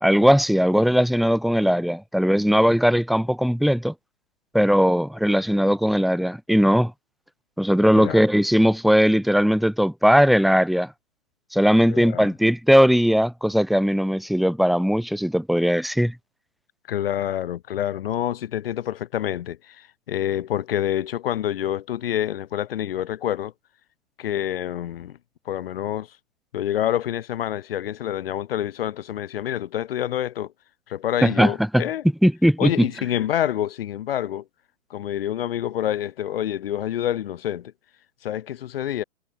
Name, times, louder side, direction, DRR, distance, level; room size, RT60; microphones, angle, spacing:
voice 1, 0.0-3.9 4.5-6.9 7.6-10.9 11.5-16.1 31.2-31.8 32.2-32.9, equal, ahead, 3.4 m, -19 dB
voice 2, 11.9-12.3 16.9-23.5 24.2-25.2 25.5-26.1 26.5-30.5 30.9-32.0 32.6-34.4 34.9-37.7 38.2-39.0, left 11 dB, 50° left, 7.2 m, -27 dB
hypercardioid pair, 135°, 37 cm